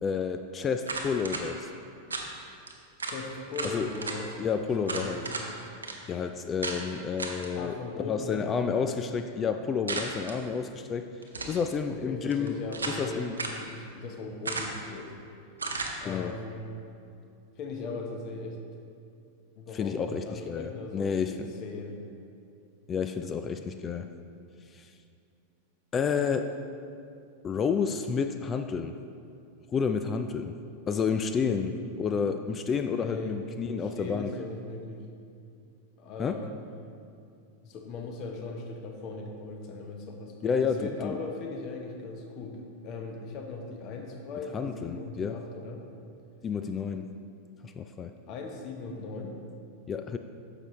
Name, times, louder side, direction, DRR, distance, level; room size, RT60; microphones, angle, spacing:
voice 1, 0.0-1.7 3.7-3.9 4.4-5.2 6.1-7.8 8.1-11.1 11.5-12.6 12.9-13.4 16.1-16.3 19.7-21.4 22.9-24.1 24.7-24.9 25.9-26.5 27.4-28.9 29.7-30.5 30.9-34.3 36.2-36.3 40.4-41.2 44.5-45.4 46.4-47.1 47.6-48.1 49.9-50.2, left 6 dB, 25° left, 8 dB, 0.3 m, -30 dB
sound 1, 0.8-1.4 2.1-2.3 2.7-2.8 3.0-3.2 3.5-4.2 4.9-5.5 5.8-5.9 6.6-6.8 7.2-7.5 9.9-10.4 11.2-11.6 12.3-13.0 13.4-13.6 14.4-14.9 15.6-15.9, right 3 dB, 75° right, 0.8 m, -34 dB
voice 2, 3.0-4.5 4.8-5.2 7.5-8.9 11.9-15.1 16.0-16.5 17.6-18.6 19.6-22.0 31.5-31.8 32.9-33.4 33.6-35.0 36.0-36.5 37.6-42.6 42.8-45.8 48.3-49.4, left 3 dB, 40° left, 3 dB, 1.0 m, -39 dB
9.7 x 6.8 x 3.2 m, 2.5 s
figure-of-eight pair, 90°, 0 cm